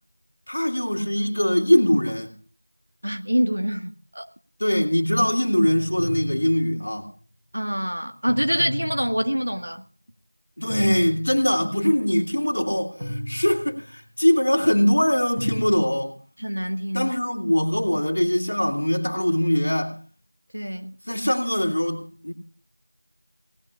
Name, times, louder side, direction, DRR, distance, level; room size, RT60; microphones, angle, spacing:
voice 1, 0.5-2.3 4.6-7.1 10.6-16.1 16.9-20.0 21.1-22.3, equal, 40° left, 2.9 m, -22 dB
voice 2, 3.0-4.3 7.5-9.8 16.4-17.1 20.5-20.9, equal, 65° right, 1.6 m, -25 dB
sound 1, 5.6-6.9 8.3-9.5 10.7-11.6 13.0-14.0 15.4-15.7, equal, 5° right, 2.1 m, -34 dB
28.5 x 18.5 x 2.5 m
figure-of-eight pair, 180°, 0 cm